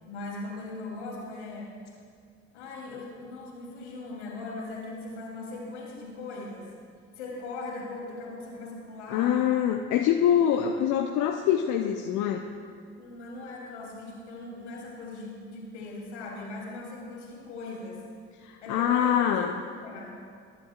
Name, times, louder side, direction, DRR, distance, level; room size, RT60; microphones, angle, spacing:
voice 1, 0.1-1.7 2.5-6.7 7.2-9.5 10.5-10.7 13.0-18.0 18.6-20.2, left 2 dB, 80° left, -3 dB, 3.3 m, -39 dB
voice 2, 9.1-12.4 18.4-19.6, left 9 dB, 55° left, 3 dB, 0.8 m, -24 dB
23.5 x 11.5 x 2.5 m, 2.1 s
figure-of-eight pair, 55°, 35 cm